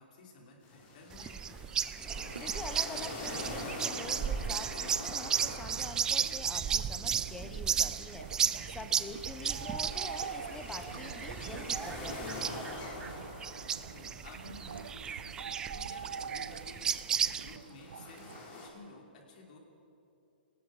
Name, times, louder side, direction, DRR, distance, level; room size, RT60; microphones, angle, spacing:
voice 1, 0.0-1.7 9.4-9.7 13.9-15.3 15.7-16.9 17.3-19.6, left 3 dB, 50° left, -1 dB, 5.1 m, -53 dB
sound 1, 0.6-18.7, left 2 dB, 30° left, 5.3 m, -46 dB
sound 2, 1.1-17.6, right 8 dB, 10° right, 0.4 m, -35 dB
sound 3, 2.1-18.4, right 7 dB, 85° right, 0.7 m, -47 dB
voice 2, 2.4-8.3 8.7-12.5, left 3 dB, 10° left, 9 dB, 1.0 m, -46 dB
30.0 x 19.5 x 5.0 m, 2.7 s
hypercardioid pair, 155°, 6 cm